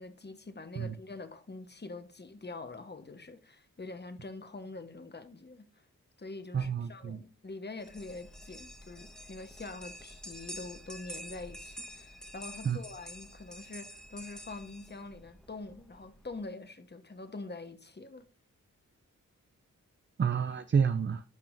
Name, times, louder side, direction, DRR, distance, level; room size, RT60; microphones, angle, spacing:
voice 1, 0.0-5.9 6.2-18.3, left 3 dB, 30° left, 1.2 m, -45 dB
voice 2, 6.5-7.2 12.6-12.8 20.2-21.2, right 6 dB, 35° right, 0.5 m, -29 dB
sound 1, 7.8-16.4, equal, ahead, 1.2 m, -48 dB
12.0 x 5.4 x 2.6 m
cardioid pair, 55°, 33 cm